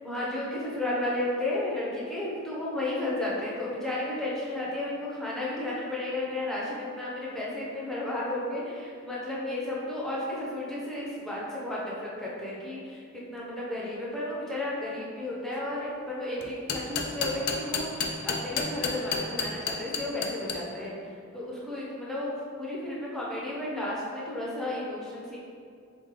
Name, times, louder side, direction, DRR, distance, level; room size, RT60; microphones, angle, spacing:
voice 1, 0.0-13.0 13.3-21.0 21.3-25.4, left 1 dB, ahead, -6 dB, 0.6 m, -33 dB
sound 1, 16.4-20.5, left 5 dB, 50° left, 0.4 m, -29 dB
3.7 x 3.3 x 3.6 m, 2.4 s
head